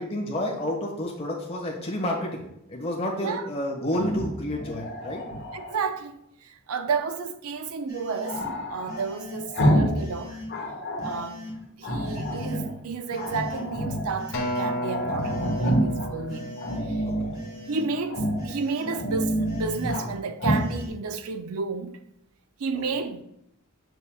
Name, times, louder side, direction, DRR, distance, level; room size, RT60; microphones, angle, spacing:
voice 1, 0.0-5.2 17.0-17.3 22.7-23.0, left 1 dB, 30° left, 1.5 m, -30 dB
Growling, 3.9-5.9 8.3-10.0 10.3-11.2 11.8-12.7 13.1-14.1 14.5-14.6 14.8-16.1 16.6-17.4 18.1-18.5 18.8-20.1 20.4-20.7, equal, 55° left, 1.3 m, -28 dB
voice 2, 5.5-10.4 11.0-11.5 11.8-16.6 16.8-17.0 17.7-22.0 22.6-23.2, right 5 dB, 80° right, 0.5 m, -31 dB
sound 1, 7.9-8.4 8.9-9.4 9.9-10.5 11.0-11.5 12.0-12.6 13.1-13.6 14.2-14.7 15.2-15.7 16.3-16.8 17.3-17.9 18.4-18.9 19.4-20.0 20.5-20.9, left 1 dB, 15° right, 1.4 m, -41 dB
Acoustic guitar, 14.3-18.7 19.4-19.5, equal, 70° left, 1.2 m, -34 dB
7.2 x 6.6 x 2.3 m
head